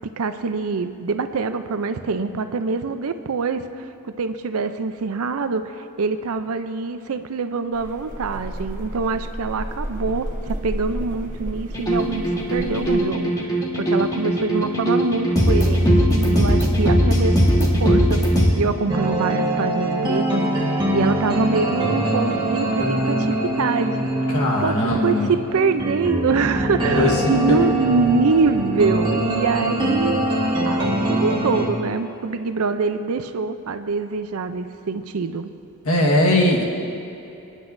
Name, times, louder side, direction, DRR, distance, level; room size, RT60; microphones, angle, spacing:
voice 1, 0.2-3.9 4.2-18.2 18.5-35.5, right 4 dB, 80° right, 9 dB, 0.5 m, -24 dB
sound 1, 7.7-13.0, right 1 dB, 40° right, 1.3 m, -32 dB
sound 2, 11.7-18.5, equal, 15° left, 1.4 m, -19 dB
sound 3, 18.9-31.7, right 1 dB, 20° right, 1.4 m, -23 dB
voice 2, 24.3-25.3 27.0-27.6 35.8-36.6, left 1 dB, 80° left, -1 dB, 1.5 m, -19 dB
26.0 x 10.0 x 2.6 m, 2.8 s
head